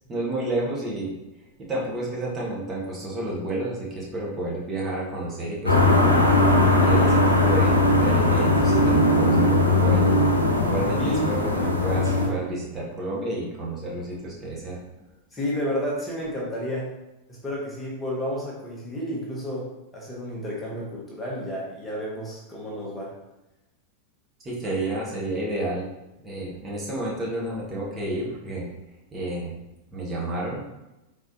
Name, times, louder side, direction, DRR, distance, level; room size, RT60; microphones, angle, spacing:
voice 1, 0.1-1.1 1.6-6.1 6.8-10.2 10.6-14.8 24.4-25.8 26.2-28.7 29.1-29.6 29.9-30.6, right 1 dB, 20° right, -5 dB, 1.4 m, -30 dB
sound 1, 5.7-12.3, left 2 dB, 80° left, 0.7 m, -19 dB
voice 2, 15.3-16.9 17.3-23.1, equal, 15° left, -4 dB, 1.2 m, -31 dB
4.8 x 4.0 x 2.7 m, 0.96 s
figure-of-eight pair, 90°, 0 cm